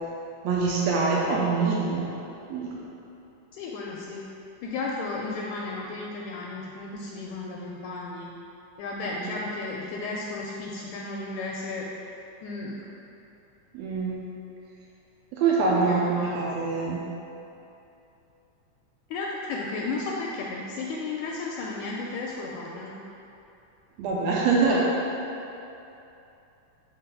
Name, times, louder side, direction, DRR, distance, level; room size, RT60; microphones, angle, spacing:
voice 1, 0.4-2.1 2.5-2.7 9.0-9.3 13.7-14.2 15.3-17.0 24.0-24.9, right 4 dB, 85° right, -4 dB, 1.5 m, -24 dB
voice 2, 3.5-4.3 4.6-8.3 8.8-11.9 12.4-12.9 15.8-16.4 19.1-22.9, left 3 dB, 80° left, -2 dB, 1.8 m, -34 dB
4.7 x 3.9 x 5.7 m, 2.8 s
omnidirectional pair, 3.7 m